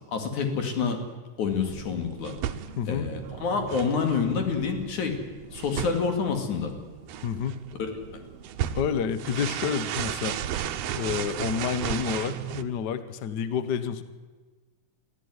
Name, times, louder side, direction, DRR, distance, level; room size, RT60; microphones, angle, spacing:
voice 1, 0.1-1.0 1.4-2.4 2.9-5.2 5.5-6.7, left 5 dB, 80° left, 5 dB, 4.0 m, -27 dB
sound 1, 1.5-12.6, right 10 dB, 70° right, 1.8 m, -35 dB
voice 2, 2.8-3.1 7.2-7.6 8.7-10.4 10.9-14.0, left 7 dB, 55° left, 13 dB, 1.2 m, -29 dB
22.5 x 14.5 x 9.7 m, 1.4 s
omnidirectional pair, 3.4 m